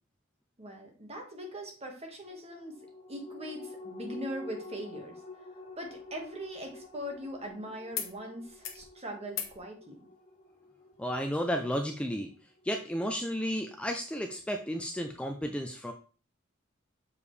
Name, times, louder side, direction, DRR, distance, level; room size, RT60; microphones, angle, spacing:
voice 1, 0.6-2.8 3.1-5.2 5.7-10.0, equal, 30° right, 2 dB, 1.5 m, -41 dB
sound 1, 2.3-13.1 13.5-13.6, left 3 dB, 35° left, 1.9 m, -49 dB
sound 2, 5.8-7.5 7.9-8.1 8.4-8.9 9.3-9.6 10.9-11.0, left 9 dB, 75° left, 1.0 m, -42 dB
voice 2, 11.0-12.3 12.6-15.9, equal, 5° left, 4 dB, 0.4 m, -32 dB
6.9 x 4.9 x 3.3 m, 0.39 s
head